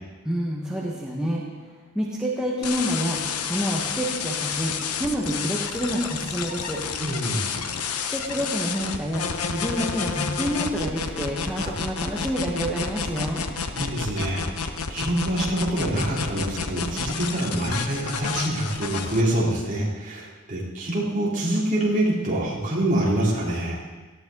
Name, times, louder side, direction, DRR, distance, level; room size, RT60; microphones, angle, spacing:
voice 1, 0.2-1.4 1.9-3.2 3.5-4.7 5.0-6.8 8.0-13.4, equal, 5° right, -5 dB, 1.6 m, -28 dB
sound 1, 2.6-19.2, left 5 dB, 90° left, 1.0 m, -30 dB
voice 2, 7.0-7.5 11.6-11.7 13.7-23.8, right 1 dB, 35° right, -5 dB, 4.0 m, -26 dB
18.5 x 15.0 x 4.0 m, 1.3 s
head